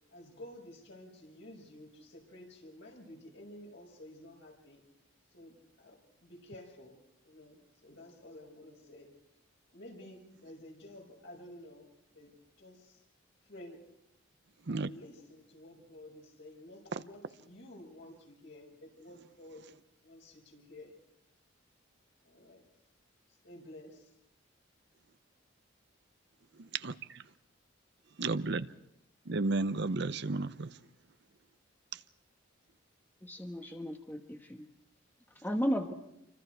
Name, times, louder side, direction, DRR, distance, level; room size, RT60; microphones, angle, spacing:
voice 1, 0.1-4.8 5.3-9.1 9.7-12.3 12.6-13.0 13.4-13.9 14.7-19.7 20.0-21.0 22.2-22.6 23.4-24.1, left 1 dB, 60° left, 6.2 m, -52 dB
voice 2, 26.6-27.2 28.2-28.7 29.3-30.7, right 3 dB, 55° right, 0.7 m, -33 dB
voice 3, 33.2-34.7 35.4-35.9, equal, 10° left, 1.3 m, -34 dB
28.0 x 25.5 x 4.7 m
head